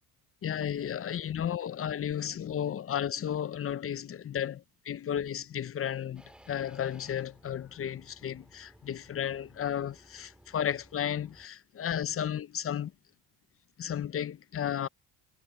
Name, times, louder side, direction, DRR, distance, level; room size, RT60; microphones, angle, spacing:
voice 1, 0.4-12.9 13.8-14.9, left 9 dB, 40° left, 0.9 m, -33 dB
sound 1, 6.2-11.5, equal, 5° right, 3.1 m, -58 dB
supercardioid pair, 80°, 35 cm